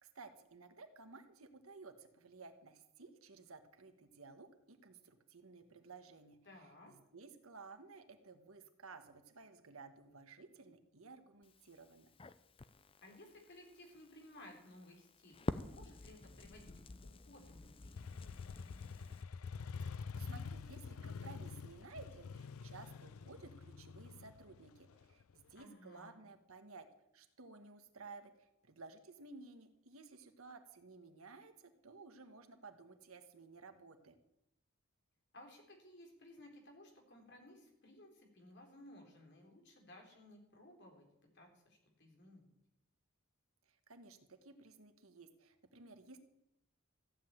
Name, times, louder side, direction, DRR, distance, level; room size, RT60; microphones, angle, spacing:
voice 1, 0.0-6.4 6.9-12.1 19.9-26.9 27.1-34.1 43.7-46.2, right 4 dB, 85° right, 7 dB, 1.6 m, -56 dB
voice 2, 6.4-6.9 13.0-18.0 25.5-26.1 35.3-41.1 41.3-42.5, left 1 dB, 55° left, 1 dB, 4.0 m, -58 dB
Crackle, 11.4-19.2, left 2 dB, 25° left, 0.5 m, -49 dB
Motorcycle, 18.0-25.6, left 5 dB, 85° left, 0.5 m, -47 dB
15.0 x 8.0 x 9.0 m, 0.86 s
head